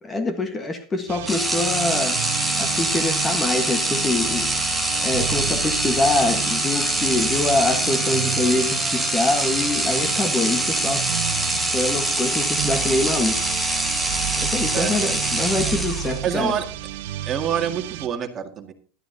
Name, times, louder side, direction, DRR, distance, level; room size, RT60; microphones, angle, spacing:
voice 1, 0.0-2.2 2.6-4.5 5.0-11.1 11.7-13.4 14.4-16.5, left 2 dB, 20° left, 8 dB, 1.4 m, -24 dB
sound 1, 1.1-18.1, right 11 dB, 70° right, 1.1 m, -31 dB
sound 2, 1.3-16.3, right 1 dB, ahead, 1.5 m, -24 dB
voice 2, 16.2-16.6 17.3-18.7, right 8 dB, 30° right, 5 dB, 1.9 m, -26 dB
17.0 x 12.0 x 2.8 m, 0.38 s
supercardioid pair, 130°, 0 cm